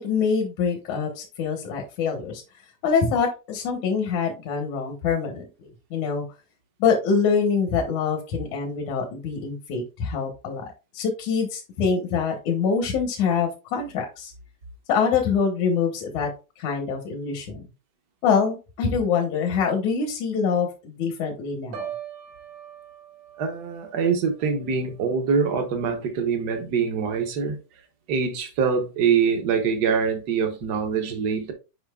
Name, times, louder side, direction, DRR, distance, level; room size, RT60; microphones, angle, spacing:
voice 1, 0.0-2.4 2.8-6.2 6.8-14.3 14.9-16.3 16.6-17.6 18.2-21.9, left 6 dB, 80° left, 2.6 m, -25 dB
Piano, 21.7-25.7 26.1-26.5, right 9 dB, 85° right, 2.8 m, -42 dB
voice 2, 23.4-27.6 28.1-31.5, right 6 dB, 70° right, 0.9 m, -24 dB
8.7 x 5.0 x 2.3 m
omnidirectional pair, 3.3 m